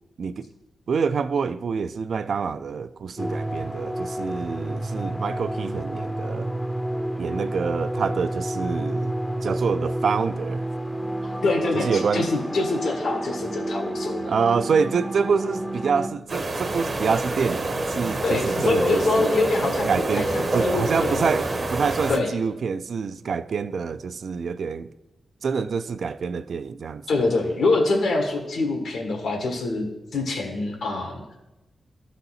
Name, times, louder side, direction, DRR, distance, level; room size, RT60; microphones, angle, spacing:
voice 1, 0.2-0.5 0.9-6.5 7.2-9.1 9.4-10.6 11.7-12.3 14.3-19.3 19.9-24.9 25.4-27.0, right 5 dB, 65° right, 0.3 m, -26 dB
sound 1, 3.2-16.1, right 1 dB, 5° left, 0.5 m, -30 dB
voice 2, 11.2-14.3 18.2-19.9 20.1-21.2 22.1-22.3 27.1-29.9 30.1-31.2, left 3 dB, 85° left, 1.6 m, -25 dB
sound 2, 16.3-22.2, right 2 dB, 35° right, 0.7 m, -27 dB
12.5 x 4.1 x 4.1 m
wide cardioid pair, 115°, 0 cm